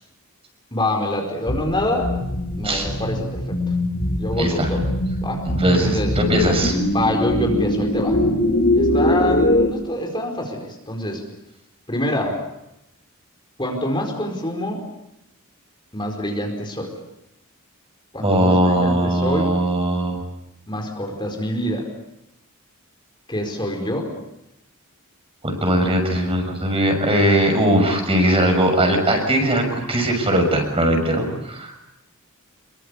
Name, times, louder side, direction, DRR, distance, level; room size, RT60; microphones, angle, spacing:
voice 1, 0.7-2.1 2.6-3.6 4.1-4.8 5.2-5.4 5.8-6.1 6.9-8.2 8.7-11.2 11.9-12.4 13.6-14.9 15.9-16.9 18.1-19.5 20.7-21.9 23.3-24.1, left 1 dB, 20° left, 1 dB, 4.8 m, -25 dB
sound 1, 1.5-9.7, left 1 dB, 45° left, 3.5 m, -22 dB
voice 2, 4.4-4.7 5.4-6.8 18.2-20.2 25.4-31.7, right 1 dB, 25° right, 4 dB, 6.5 m, -19 dB
26.5 x 24.0 x 8.3 m, 0.87 s
head